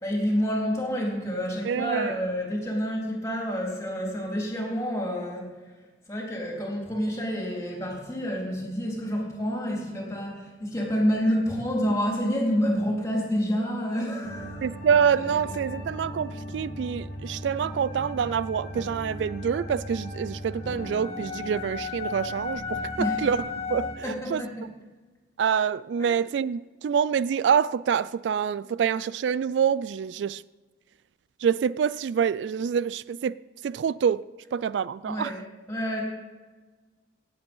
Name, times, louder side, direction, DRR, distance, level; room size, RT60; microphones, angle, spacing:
voice 1, 0.0-5.6 6.1-14.6 23.0-23.2 24.0-24.7 26.0-26.2 35.1-35.4 35.7-36.0, equal, 15° left, 3.7 m, -28 dB
voice 2, 1.6-2.1 14.6-23.4 23.7-24.4 25.4-30.4 31.4-33.4 33.6-34.2 34.5-35.4, right 7 dB, 75° right, 0.3 m, -26 dB
sound 1, 14.2-23.9, left 2 dB, 35° left, 2.1 m, -35 dB
17.5 x 8.0 x 5.5 m
head